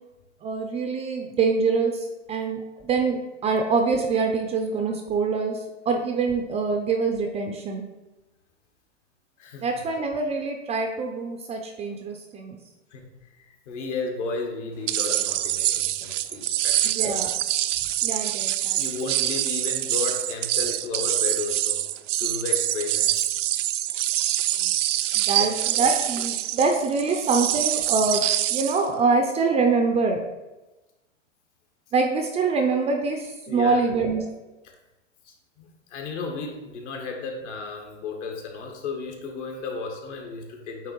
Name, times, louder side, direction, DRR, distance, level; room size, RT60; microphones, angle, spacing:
voice 1, 0.4-7.8 9.6-12.6 16.8-17.3 18.0-18.8 20.7-20.8 24.6-24.7 25.1-30.2 31.9-34.2, right 4 dB, 15° right, 4 dB, 0.4 m, -25 dB
voice 2, 13.3-17.1 18.7-21.8 22.2-23.3 25.4-25.8 33.5-33.8 35.2-40.9, left 4 dB, 70° left, 2 dB, 1.7 m, -34 dB
sound 1, 14.9-28.9, right 13 dB, 75° right, 0.5 m, -25 dB
8.6 x 3.1 x 4.5 m, 1.1 s
hypercardioid pair, 120°, 37 cm